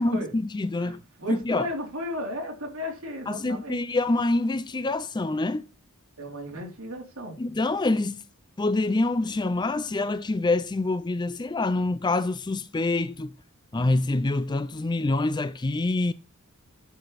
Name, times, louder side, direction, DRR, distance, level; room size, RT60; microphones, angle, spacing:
voice 1, 0.0-1.0 1.3-1.7 3.3-5.7 7.4-8.3 8.6-13.3 13.7-16.1, left 2 dB, 20° left, 0.4 m, -26 dB
voice 2, 0.8-3.8 6.2-7.4, left 1 dB, 65° right, 3.4 m, -35 dB
11.5 x 5.0 x 4.1 m
head